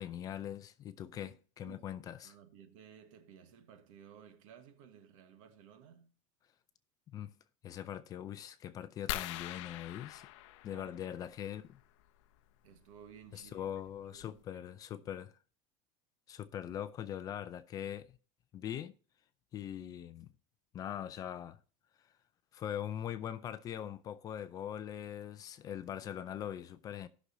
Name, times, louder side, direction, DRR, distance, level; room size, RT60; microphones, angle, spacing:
voice 1, 0.0-2.3 7.1-7.3 7.6-10.3 10.6-11.8 13.3-15.3 16.3-18.2 18.5-18.9 19.5-20.3 20.7-21.6 22.5-27.1, left 10 dB, 20° left, 0.4 m, -42 dB
voice 2, 2.2-6.1 10.7-11.3 12.6-15.1, right 8 dB, 85° right, 1.5 m, -57 dB
sound 1, 9.1-11.5 13.1-13.2 13.8-13.9 14.2-14.4, left 14 dB, 70° left, 0.6 m, -42 dB
16.5 x 6.2 x 2.7 m
cardioid pair, 180°, 17 cm